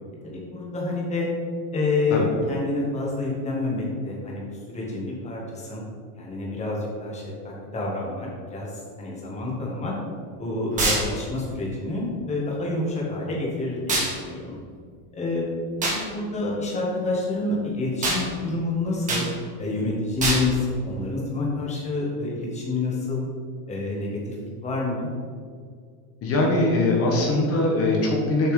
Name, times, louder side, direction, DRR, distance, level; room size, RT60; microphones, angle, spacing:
voice 1, 0.2-1.3 1.7-5.8 6.2-9.9 10.4-14.5 15.1-15.4 15.8-19.3 19.6-23.3 23.7-24.3 24.6-25.1, left 2 dB, 15° left, -4 dB, 1.4 m, -28 dB
sound 1, 10.8-11.1 13.9-14.1 15.8-16.0 18.0-18.2 19.1-19.3 20.2-20.5, right 2 dB, 15° right, 1.4 m, -23 dB
voice 2, 26.2-28.5, left 2 dB, 30° left, -1 dB, 1.1 m, -21 dB
6.9 x 5.8 x 3.2 m, 2.1 s
supercardioid pair, 155°, 47 cm